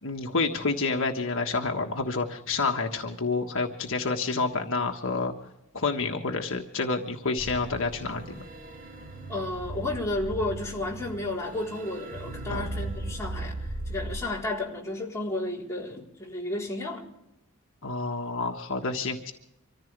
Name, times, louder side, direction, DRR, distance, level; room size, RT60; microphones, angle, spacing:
voice 1, 0.0-5.3 5.7-8.4 12.5-12.6 17.8-19.3, left 3 dB, 65° left, 1.5 m, -29 dB
sound 1, 7.4-14.2, right 2 dB, 40° right, 3.4 m, -37 dB
voice 2, 9.3-17.1, left 2 dB, 15° left, 3.9 m, -32 dB
26.0 x 15.0 x 3.4 m
head